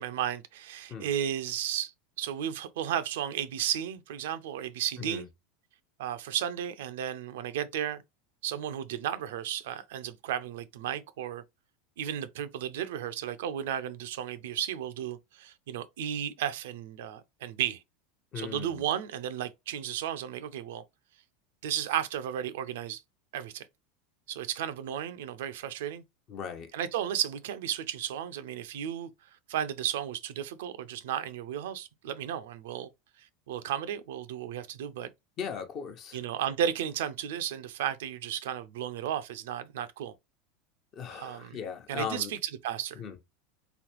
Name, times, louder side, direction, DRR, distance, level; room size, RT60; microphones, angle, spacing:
voice 1, 0.0-1.9 2.2-5.3 6.0-8.0 8.4-11.4 12.0-17.8 18.4-20.8 21.6-23.0 23.3-23.7 24.3-26.0 26.7-29.1 29.5-32.9 33.5-35.1 36.1-40.1 41.1-41.6 41.9-43.0, right 10 dB, 70° right, 0.4 m, -34 dB
voice 2, 18.3-18.8 26.3-26.7 35.4-36.2 40.9-42.3 43.0-43.2, left 7 dB, 45° left, 0.9 m, -38 dB
3.4 x 3.1 x 2.9 m
hypercardioid pair, 90°, 0 cm